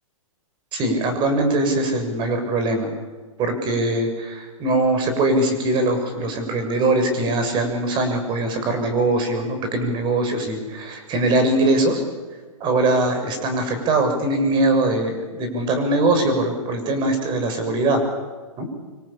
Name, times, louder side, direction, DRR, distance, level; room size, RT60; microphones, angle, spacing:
voice 1, 0.7-2.9 3.4-12.0 12.6-18.0 18.6-18.7, right 2 dB, 25° right, 6 dB, 6.9 m, -21 dB
26.5 x 25.0 x 8.8 m, 1.3 s
hypercardioid pair, 140°, 18 cm